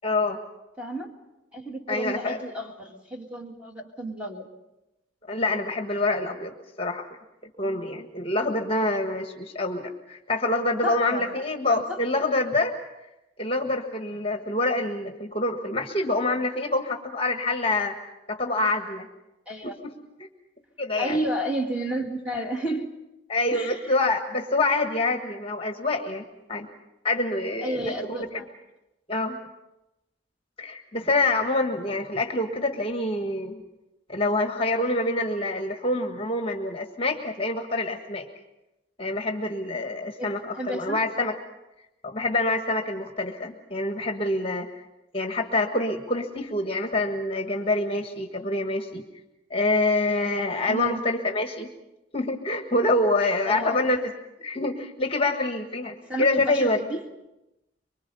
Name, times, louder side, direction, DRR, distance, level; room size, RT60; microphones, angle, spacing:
voice 1, 0.0-0.4 1.9-2.4 5.3-7.1 7.6-12.7 13.4-17.9 18.3-19.1 19.6-19.7 20.8-21.2 23.3-26.7 27.0-28.3 29.1-29.4 30.6-33.6 34.1-38.3 39.0-41.3 42.0-44.7 45.1-49.0 49.5-51.7 52.1-54.0 54.4-56.8, left 2 dB, 30° left, 4 dB, 1.5 m, -26 dB
voice 2, 0.8-1.1 1.5-4.5 10.8-11.3 11.6-12.0 19.5-19.8 21.0-22.9 23.5-23.9 27.6-28.5 40.2-41.0 50.7-51.0 53.5-53.8 56.1-57.0, right 1 dB, 5° right, 1 dB, 2.2 m, -31 dB
24.0 x 24.0 x 5.5 m, 0.95 s
head